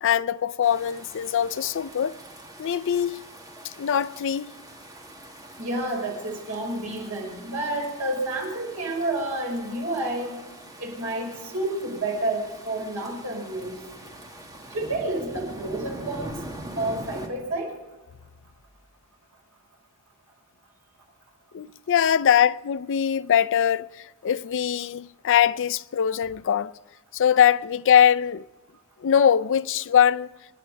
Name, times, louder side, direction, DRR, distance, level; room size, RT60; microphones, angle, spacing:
voice 1, 0.0-2.1 2.6-3.2 3.8-4.5 21.5-23.9 24.2-26.7 27.1-28.4 29.0-30.3, left 9 dB, 60° left, 0.4 m, -22 dB
sound 1, 0.6-17.3, right 1 dB, 15° right, 2.2 m, -43 dB
voice 2, 5.6-10.4 10.8-13.8 14.7-16.3 16.8-17.8, right 2 dB, 75° right, 5.9 m, -29 dB
26.5 x 10.5 x 5.1 m
head